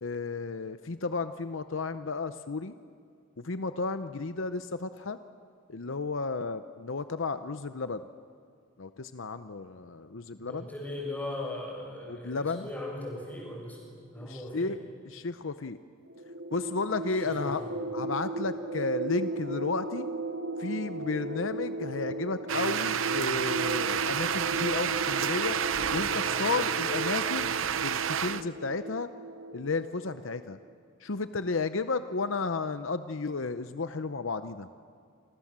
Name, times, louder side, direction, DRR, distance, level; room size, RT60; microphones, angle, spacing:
voice 1, 0.0-2.7 3.4-5.2 5.7-8.0 8.8-10.7 12.1-12.7 14.2-14.8 15.1-15.8 16.5-17.6 17.9-20.1 20.6-25.6 25.9-29.1 29.5-30.6 31.0-34.7, left 3 dB, 65° left, 11 dB, 0.8 m, -33 dB
voice 2, 10.5-14.7 17.3-17.7, left 1 dB, 10° left, -2 dB, 7.5 m, -39 dB
sound 1, 16.1-30.4, right 2 dB, 85° right, 2.5 m, -36 dB
sound 2, 22.5-28.4, right 8 dB, 70° right, 0.7 m, -30 dB
29.5 x 25.5 x 7.5 m, 2.2 s
head